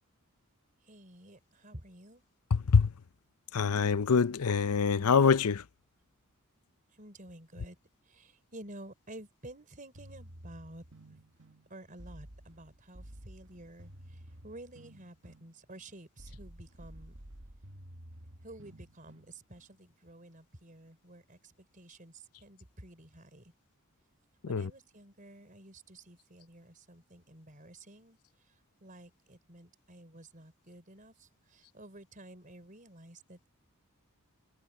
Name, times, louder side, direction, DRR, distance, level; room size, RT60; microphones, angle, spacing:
voice 1, 0.8-2.2 6.9-7.8 8.1-10.8 11.7-17.1 18.4-23.5 24.5-28.2 28.8-33.5, right 1 dB, 35° right, 4.1 m, -51 dB
voice 2, 2.5-2.9 3.5-5.6 24.4-24.7, left 5 dB, 85° left, 0.6 m, -25 dB
sound 1, 9.9-19.7, right 1 dB, 60° right, 1.9 m, -52 dB
head